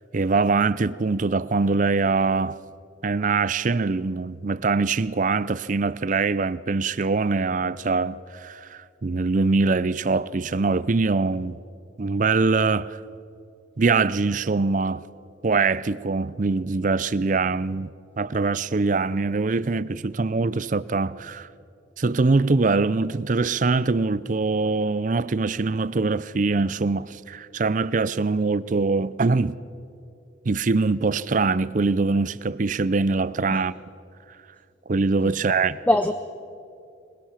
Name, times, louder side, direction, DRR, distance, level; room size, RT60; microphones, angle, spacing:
voice 1, 0.1-2.6 3.0-11.6 12.0-13.0 13.8-15.1 15.4-17.9 18.2-21.5 22.0-29.6 30.5-33.7 34.9-35.8, right 3 dB, 40° right, 0.5 m, -23 dB
voice 2, 35.3-36.1, left 1 dB, 10° left, 0.5 m, -24 dB
25.0 x 21.5 x 5.8 m
head